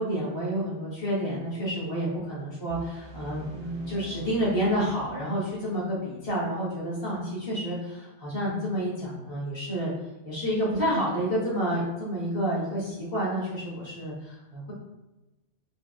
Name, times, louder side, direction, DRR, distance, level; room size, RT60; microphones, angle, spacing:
voice 1, 0.0-9.9 10.2-14.7, equal, 55° left, -8 dB, 1.9 m, -29 dB
sound 1, 2.7-5.7, right 4 dB, 70° right, 1.0 m, -46 dB
4.6 x 4.3 x 2.4 m, 1.0 s
omnidirectional pair, 1.2 m